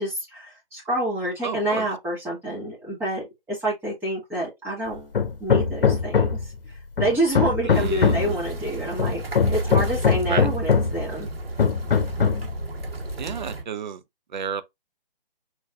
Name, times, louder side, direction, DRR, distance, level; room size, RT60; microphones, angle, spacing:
voice 1, 0.0-5.1 5.4-6.4 7.0-9.2 9.5-11.3, right 1 dB, 5° right, 2.3 m, -27 dB
voice 2, 1.4-1.9 7.6-8.4 10.3-10.5 13.2-14.0 14.3-14.6, right 7 dB, 50° right, 0.6 m, -31 dB
Hammer, 5.1-6.5 7.0-8.4 9.0-11.0 11.6-12.5, left 6 dB, 70° left, 1.0 m, -21 dB
sound 1, 7.7-13.6, right 2 dB, 85° right, 1.9 m, -34 dB
4.5 x 4.1 x 2.6 m
hypercardioid pair, 155°, 29 cm